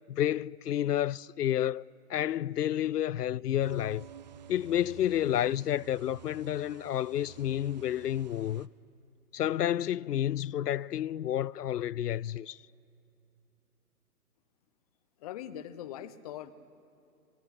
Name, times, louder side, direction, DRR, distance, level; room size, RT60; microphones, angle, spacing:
voice 1, 0.1-4.1 4.5-8.7 9.3-12.6, left 11 dB, 85° left, 0.5 m, -30 dB
sound 1, 3.6-8.7, right 10 dB, 30° right, 0.6 m, -51 dB
voice 2, 15.2-16.5, left 11 dB, 25° left, 0.8 m, -41 dB
27.5 x 20.0 x 9.9 m
hypercardioid pair, 140°, 46 cm